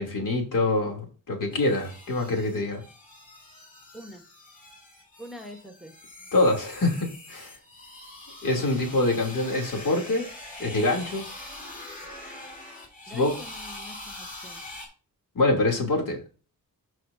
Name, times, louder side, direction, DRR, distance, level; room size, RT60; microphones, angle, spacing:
voice 1, 0.0-2.8 6.3-7.5 8.4-10.3 10.6-11.3 13.1-13.4 15.3-16.2, left 2 dB, 60° left, 1 dB, 3.0 m, -25 dB
sound 1, 1.5-14.9, left 2 dB, 25° left, 4.6 m, -43 dB
voice 2, 5.2-5.9 13.1-14.6, equal, ahead, 4 dB, 1.2 m, -44 dB
14.0 x 4.8 x 2.7 m, 0.35 s
wide cardioid pair, 155°, 36 cm